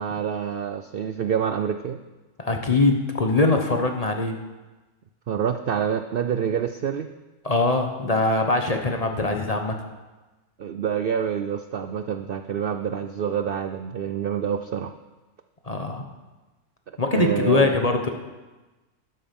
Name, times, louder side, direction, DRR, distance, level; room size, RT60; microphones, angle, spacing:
voice 1, 0.0-2.0 5.3-7.1 10.6-14.9 17.1-17.8, right 8 dB, 65° right, 8 dB, 0.5 m, -27 dB
voice 2, 2.4-4.4 7.4-9.8 15.7-16.0 17.0-18.1, left 3 dB, 30° left, 4 dB, 1.0 m, -22 dB
12.5 x 12.0 x 5.4 m, 1.2 s
omnidirectional pair, 1.5 m